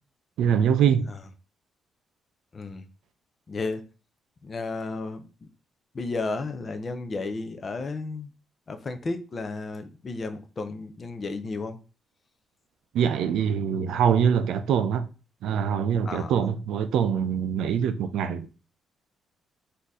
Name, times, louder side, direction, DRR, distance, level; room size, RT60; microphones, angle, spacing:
voice 1, 0.4-1.1 12.9-15.1 15.4-18.5, right 8 dB, 75° right, 0.5 m, -24 dB
voice 2, 2.5-2.8 3.5-3.8 4.4-5.5 5.9-8.3 8.7-11.8 16.0-16.4, left 3 dB, 25° left, 0.5 m, -33 dB
4.2 x 2.7 x 4.7 m
cardioid pair, 180°, 0 cm